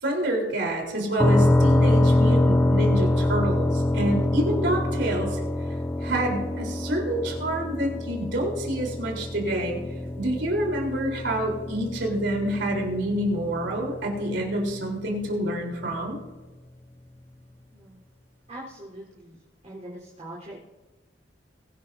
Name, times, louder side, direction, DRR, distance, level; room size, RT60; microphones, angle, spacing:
voice 1, 0.0-5.4 6.0-9.8 10.2-16.2, right 1 dB, 70° right, 0 dB, 4.2 m, -27 dB
sound 1, 1.2-14.9, left 1 dB, 15° left, 0.5 m, -25 dB
voice 2, 18.5-19.4 19.6-20.6, right 1 dB, 35° right, -7 dB, 4.2 m, -42 dB
22.0 x 11.5 x 2.8 m, 1.2 s
head